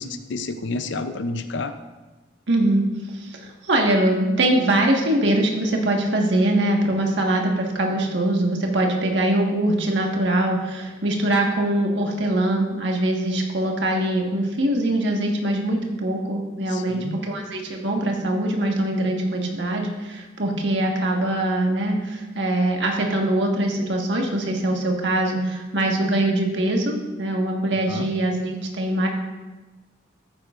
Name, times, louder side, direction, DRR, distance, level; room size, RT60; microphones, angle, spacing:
voice 1, 0.0-1.8 16.7-17.2 27.9-28.1, left 3 dB, 70° left, 9 dB, 0.6 m, -30 dB
voice 2, 2.5-29.1, right 1 dB, 70° right, 1 dB, 1.5 m, -22 dB
13.5 x 9.4 x 2.5 m, 1.2 s
head